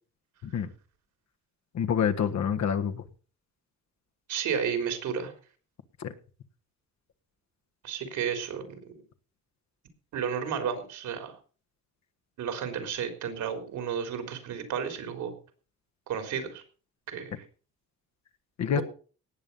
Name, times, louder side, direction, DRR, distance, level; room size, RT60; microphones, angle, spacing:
voice 1, 1.7-3.0 6.0-6.1 18.6-18.8, left 8 dB, 65° left, 7 dB, 1.7 m, -27 dB
voice 2, 4.3-5.3 7.8-8.9 10.1-11.3 12.4-15.3 16.1-16.6 17.1-17.4 18.7-18.8, right 7 dB, 80° right, 6 dB, 3.8 m, -32 dB
18.5 x 7.8 x 5.6 m, 0.38 s
cardioid pair, 90°, 30 cm